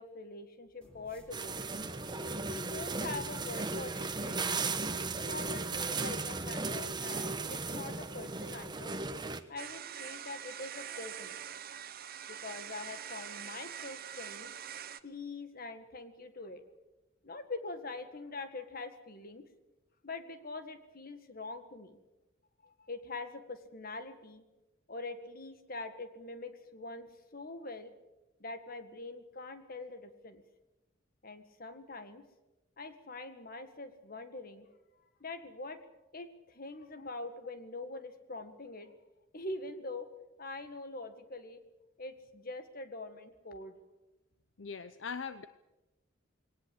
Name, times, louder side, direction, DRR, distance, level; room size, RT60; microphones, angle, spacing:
voice 1, 0.0-1.7 2.5-4.4 5.0-8.9 9.5-11.4 12.3-14.5 15.0-16.6 17.2-19.4 20.0-22.0 22.6-24.5 24.9-27.9 28.4-30.4 31.2-32.2 32.8-34.7 35.2-35.8 36.1-38.9 39.3-40.1 40.4-41.6 42.0-43.7, left 3 dB, 50° left, 9 dB, 1.9 m, -44 dB
sound 1, 0.8-9.2, equal, 5° left, 4.1 m, -59 dB
sound 2, 1.3-9.4, right 3 dB, 25° right, 1.1 m, -36 dB
sound 3, 9.6-15.0, right 9 dB, 50° right, 0.9 m, -44 dB
voice 2, 44.6-45.5, left 5 dB, 70° left, 13 dB, 0.7 m, -41 dB
21.0 x 18.5 x 8.0 m, 1.0 s
head